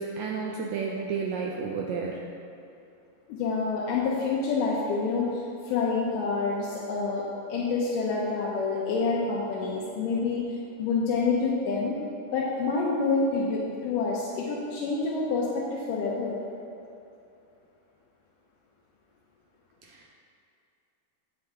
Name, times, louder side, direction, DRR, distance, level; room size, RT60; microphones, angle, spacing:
voice 1, 0.0-2.2 19.8-20.1, right 5 dB, 85° right, -1 dB, 1.5 m, -32 dB
voice 2, 3.3-10.4 10.8-12.0 12.3-16.4, left 4 dB, 85° left, -5 dB, 2.3 m, -27 dB
8.8 x 5.9 x 3.6 m, 2.6 s
omnidirectional pair, 3.7 m